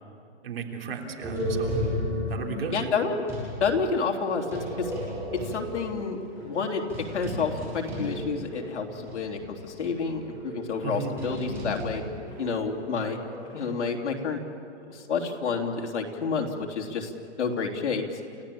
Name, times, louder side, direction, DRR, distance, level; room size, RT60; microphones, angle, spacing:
voice 1, 0.4-1.8 2.3-2.9 10.8-11.1, right 6 dB, 55° right, 1 dB, 3.5 m, -34 dB
sound 1, 1.2-3.5 4.3-8.7 9.1-9.2 9.8-13.4, equal, 5° right, 7.0 m, -34 dB
voice 2, 2.7-3.3 3.6-4.9 5.3-12.0 12.4-13.2 13.5-14.4 14.9-17.1 17.4-18.0, left 5 dB, 80° left, 1 dB, 3.6 m, -29 dB
sound 2, 2.9-13.7, equal, 10° left, 7.3 m, -51 dB
29.5 x 16.5 x 8.7 m, 2.5 s
hypercardioid pair, 180°, 34 cm